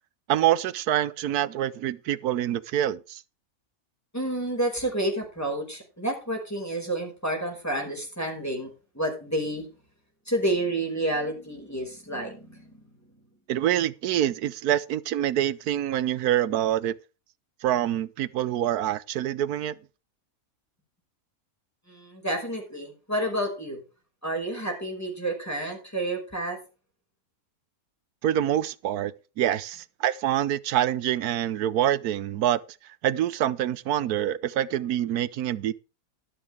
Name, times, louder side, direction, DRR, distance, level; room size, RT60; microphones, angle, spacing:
voice 1, 0.3-3.2 13.5-16.9 17.6-19.8 28.2-32.6 33.0-35.7, right 11 dB, 90° right, 1.3 m, -26 dB
voice 2, 4.1-9.7 10.3-12.8 21.9-23.8 24.2-26.6, right 1 dB, 10° left, 5.2 m, -30 dB
12.5 x 12.0 x 3.4 m
omnidirectional pair, 1.6 m